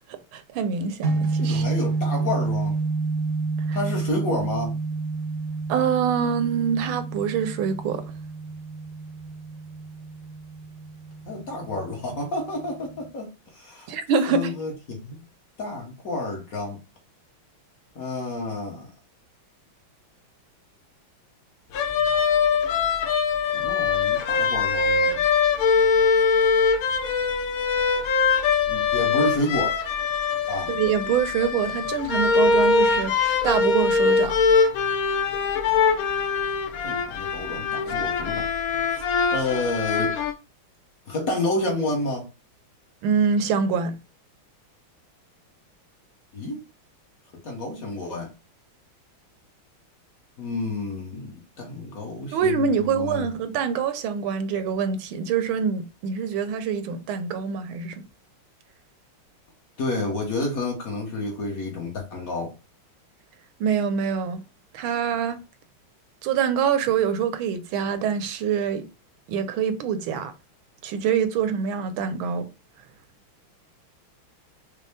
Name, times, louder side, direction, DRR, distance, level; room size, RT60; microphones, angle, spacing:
voice 1, 0.3-1.7 3.7-3.8 5.7-8.0 13.9-14.5 30.7-34.4 37.9-38.0 43.0-44.0 52.3-58.0 63.6-64.4 64.7-65.4 66.2-68.8 69.3-70.3 70.8-72.5, right 7 dB, 80° right, 1.4 m, -25 dB
sound 1, 1.0-13.1, right 3 dB, 60° right, 0.8 m, -29 dB
voice 2, 1.4-2.8 3.7-4.8 11.3-13.9 14.3-15.3 15.6-16.8 17.9-18.9 23.5-25.3 28.7-29.7 30.5-30.7 36.8-38.5 38.9-39.0 39.3-40.2 41.1-42.3 46.3-46.7 47.3-48.3 50.4-53.3 59.8-62.5, left 2 dB, 50° left, 1.2 m, -30 dB
sound 2, 21.7-40.3, left 5 dB, 85° left, 0.7 m, -22 dB
5.4 x 2.1 x 3.3 m
omnidirectional pair, 2.2 m